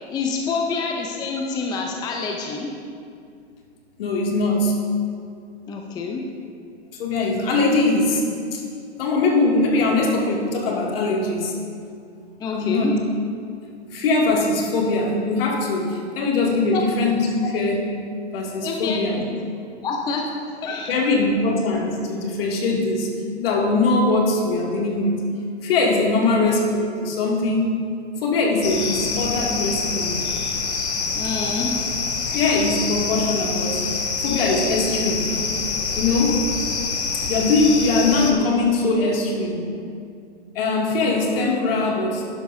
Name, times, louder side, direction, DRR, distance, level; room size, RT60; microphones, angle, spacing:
voice 1, 0.1-2.7 5.7-6.2 12.4-12.9 16.7-16.8 18.6-19.0 19.3-19.4 19.8-20.3 20.6-20.9 31.1-31.7, left 4 dB, 10° left, 1 dB, 0.6 m, -27 dB
voice 2, 4.0-4.8 7.0-8.6 9.0-11.5 12.5-12.9 13.9-17.9 18.3-19.2 20.9-23.1 23.4-25.2 25.6-27.8 28.2-30.2 32.3-33.8 34.2-35.3 36.0-36.5 37.3-39.6 40.5-42.2, left 3 dB, 55° left, -2 dB, 2.4 m, -21 dB
sound 1, 28.6-38.3, left 4 dB, 70° left, 1.5 m, -26 dB
11.5 x 11.5 x 2.7 m, 2.3 s
hypercardioid pair, 120°, 34 cm